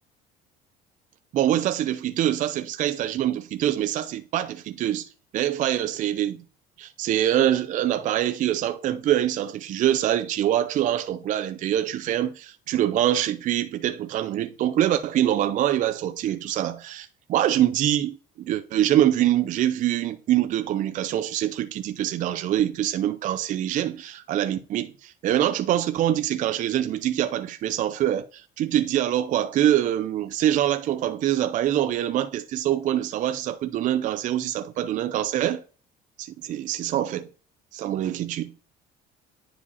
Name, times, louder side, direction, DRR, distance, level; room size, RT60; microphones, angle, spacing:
voice 1, 1.3-6.4 6.8-35.6 36.2-37.3 37.7-38.5, right 12 dB, 45° right, 0.5 m, -24 dB
9.8 x 4.9 x 2.8 m
cardioid pair, 130°, 18 cm